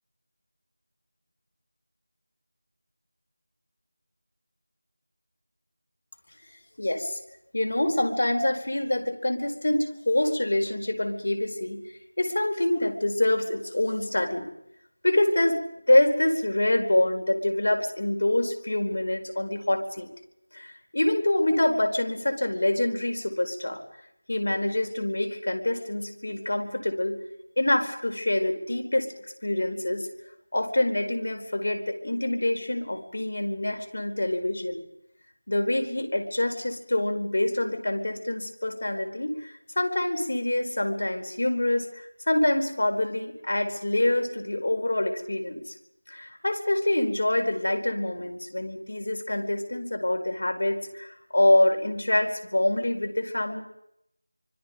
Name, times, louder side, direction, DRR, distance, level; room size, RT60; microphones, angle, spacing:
voice 1, 6.8-7.2 7.5-11.8 12.2-14.5 15.0-15.6 15.9-20.1 20.5-23.8 24.3-27.2 27.6-29.1 29.4-30.1 30.5-34.8 35.5-45.6 46.1-53.6, left 1 dB, 50° left, 5 dB, 4.6 m, -26 dB
29.5 x 25.0 x 5.3 m, 0.79 s
figure-of-eight pair, 175°, 0 cm